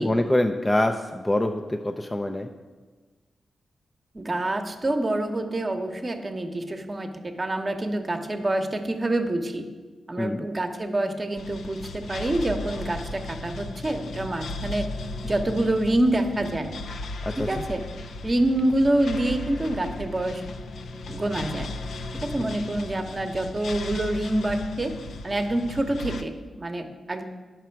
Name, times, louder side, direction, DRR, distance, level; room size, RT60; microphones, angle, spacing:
voice 1, 0.0-2.5 10.2-10.5 17.4-17.5 22.4-22.5, left 1 dB, 20° left, 5 dB, 0.5 m, -25 dB
voice 2, 4.1-9.6 10.1-14.9 15.2-16.7 17.5-17.8 18.2-20.4 21.1-21.7 22.2-24.9 25.2-27.2, right 1 dB, 35° right, 5 dB, 0.9 m, -26 dB
sound 1, 11.4-26.2, left 2 dB, 80° left, 0.5 m, -36 dB
9.3 x 6.0 x 4.6 m, 1.4 s
cardioid pair, 55°, 0 cm